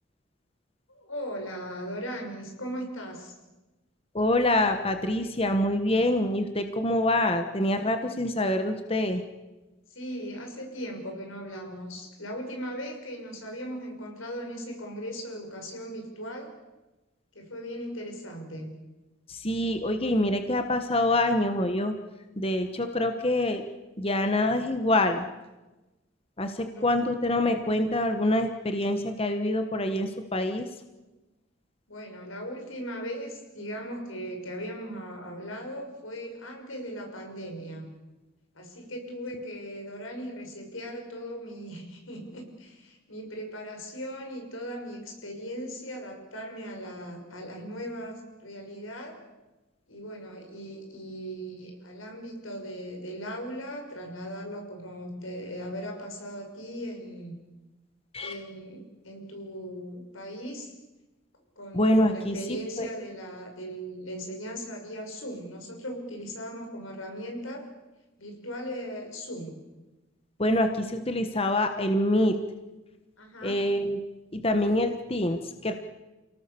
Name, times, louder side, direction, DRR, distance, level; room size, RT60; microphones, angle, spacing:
voice 1, 0.9-3.3 9.9-16.5 17.3-18.8 26.7-26.9 31.9-37.9 38.5-49.1 49.9-57.4 58.2-60.7 61.6-67.7 68.2-69.6 73.2-73.6, equal, 90° left, 3 dB, 6.2 m, -38 dB
voice 2, 4.1-9.2 19.3-21.9 22.4-23.6 24.0-25.2 26.4-30.7 58.1-58.3 61.7-62.9 70.4-72.4 73.4-74.0 74.3-75.7, left 1 dB, 30° left, 7 dB, 1.3 m, -25 dB
29.5 x 18.0 x 7.0 m, 1.1 s
head